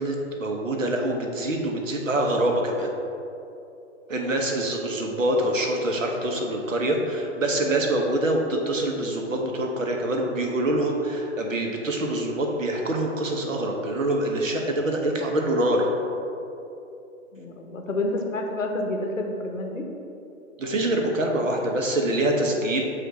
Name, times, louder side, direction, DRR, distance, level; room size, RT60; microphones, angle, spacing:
voice 1, 0.0-2.9 4.1-15.9 20.6-22.8, right 1 dB, 85° right, 1 dB, 1.1 m, -25 dB
voice 2, 17.3-19.8, left 2 dB, 85° left, 2 dB, 1.0 m, -29 dB
7.7 x 2.6 x 5.0 m, 2.8 s
figure-of-eight pair, 130°, 38 cm